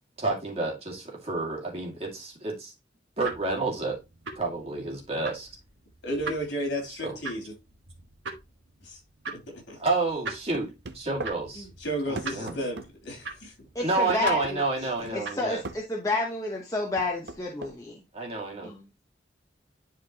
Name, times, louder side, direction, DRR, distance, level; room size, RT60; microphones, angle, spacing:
voice 1, 0.2-2.7 3.2-4.0 4.4-5.5 7.0-7.2 9.8-10.7 10.9-11.7 12.1-12.6 13.8-15.6 18.1-18.7, right 3 dB, 30° right, 2.2 m, -29 dB
sound 1, 3.2-15.8, right 4 dB, 80° right, 1.5 m, -43 dB
voice 2, 6.0-7.5 8.8-9.0 9.3-9.8 11.5-13.5 15.0-15.3, equal, 70° left, 3.3 m, -33 dB
sound 2, 10.5-11.4 12.2-12.9 14.1-14.6 15.6-15.8 17.0-17.8, right 3 dB, 65° right, 0.7 m, -38 dB
voice 3, 13.7-18.0 18.6-18.8, left 2 dB, 15° left, 1.0 m, -30 dB
10.5 x 4.4 x 2.9 m
head